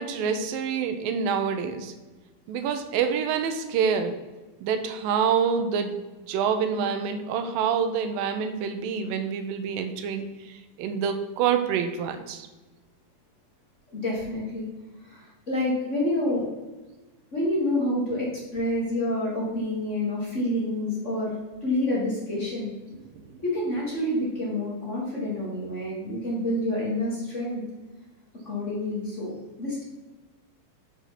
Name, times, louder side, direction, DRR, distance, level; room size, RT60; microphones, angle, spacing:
voice 1, 0.0-1.9 2.5-4.1 4.6-6.0 6.3-12.5 23.2-23.3, right 7 dB, 80° right, 7 dB, 2.4 m, -27 dB
voice 2, 13.9-14.6 15.0-16.4 17.3-21.3 21.6-22.7 23.4-27.6 28.4-29.8, left 1 dB, 35° left, -6 dB, 1.3 m, -28 dB
6.5 x 5.2 x 5.8 m, 1.2 s
omnidirectional pair, 4.2 m